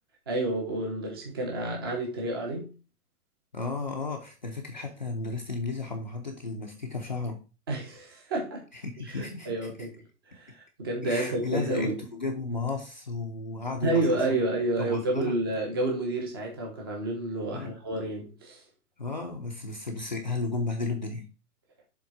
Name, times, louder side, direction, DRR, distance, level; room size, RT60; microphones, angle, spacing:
voice 1, 0.3-2.7 7.7-8.6 9.1-9.9 10.3-12.0 13.8-18.6, right 2 dB, 15° right, 0.8 m, -30 dB
voice 2, 3.5-7.4 8.7-9.5 11.0-14.1 14.8-15.4 17.5-17.8 19.0-21.3, left 3 dB, 30° left, 0.5 m, -33 dB
7.1 x 3.6 x 4.7 m
hypercardioid pair, 180°, 46 cm